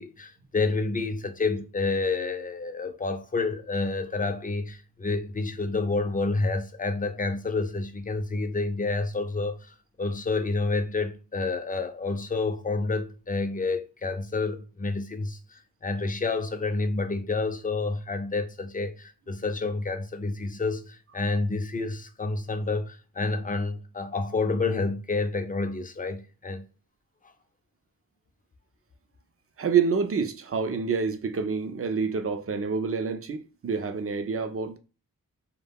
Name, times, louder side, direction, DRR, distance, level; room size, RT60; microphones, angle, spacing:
voice 1, 0.0-26.7, left 3 dB, 25° left, 0.4 m, -29 dB
voice 2, 29.6-34.8, right 5 dB, 40° right, 0.5 m, -27 dB
2.2 x 2.1 x 3.4 m
cardioid pair, 50°, 35 cm